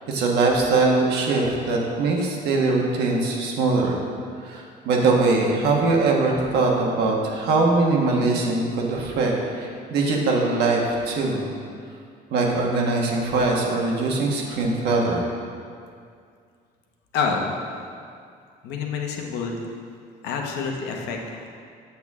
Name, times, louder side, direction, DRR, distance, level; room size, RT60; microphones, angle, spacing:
voice 1, 0.1-4.0 4.4-11.5 12.3-15.2, right 3 dB, 75° right, -1 dB, 1.3 m, -22 dB
voice 2, 17.1-17.6 18.6-19.6 20.2-21.5, left 5 dB, 85° left, 1 dB, 1.0 m, -27 dB
7.1 x 6.8 x 3.6 m, 2.3 s
cardioid pair, 110°, 17 cm